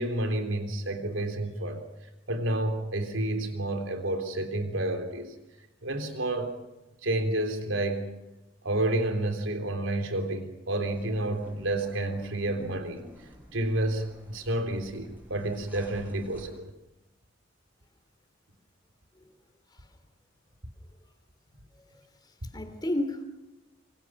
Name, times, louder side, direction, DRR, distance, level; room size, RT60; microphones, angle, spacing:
voice 1, 0.0-1.8 2.3-5.3 5.8-6.5 7.0-8.1 8.6-13.0 13.5-16.7, right 1 dB, 85° right, 6 dB, 3.6 m, -30 dB
sound 1, 10.8-16.5, equal, 10° right, 7.9 m, -50 dB
voice 2, 22.5-23.2, left 1 dB, 20° left, 7 dB, 3.2 m, -32 dB
27.0 x 24.0 x 6.1 m, 0.98 s
head